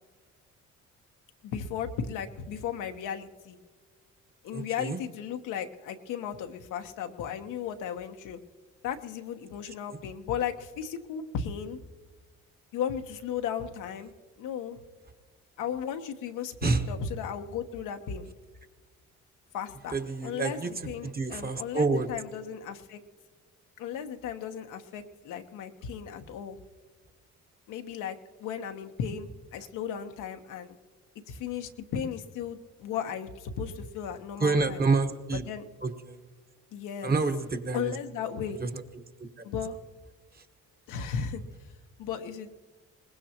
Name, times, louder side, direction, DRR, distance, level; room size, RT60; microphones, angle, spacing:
voice 1, 1.4-3.6 4.4-8.4 8.8-11.8 12.7-14.1 14.4-14.8 15.6-18.3 19.5-23.0 23.8-26.6 27.7-30.8 31.3-34.8 35.3-35.7 36.7-37.1 37.7-38.6 39.4-39.8 40.9-41.4 42.0-42.6, left 8 dB, 90° left, 6 dB, 1.1 m, -35 dB
voice 2, 4.5-5.0 16.6-16.8 19.9-20.7 21.1-22.0 34.4-35.4 37.0-37.9, right 3 dB, 30° right, 8 dB, 1.3 m, -27 dB
22.5 x 19.5 x 3.0 m, 1.4 s
cardioid pair, 90°, 30 cm